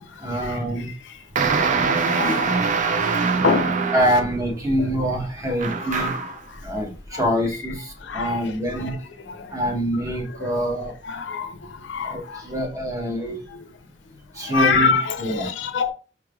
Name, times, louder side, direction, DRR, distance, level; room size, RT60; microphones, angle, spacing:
voice 1, 0.2-0.9 3.9-6.2 6.6-9.0 9.5-11.0 12.0-13.4 14.3-15.5, equal, 20° right, 0.8 m, -25 dB
sound 1, 1.3-4.4 5.6-6.4, right 5 dB, 45° right, 0.5 m, -23 dB
voice 2, 1.8-3.7 5.5-6.3 7.1-7.2 8.0-9.0 9.3-9.5 10.3-12.4 13.2-13.6 14.4-15.9, left 4 dB, 75° left, 0.6 m, -27 dB
4.7 x 3.2 x 2.3 m
head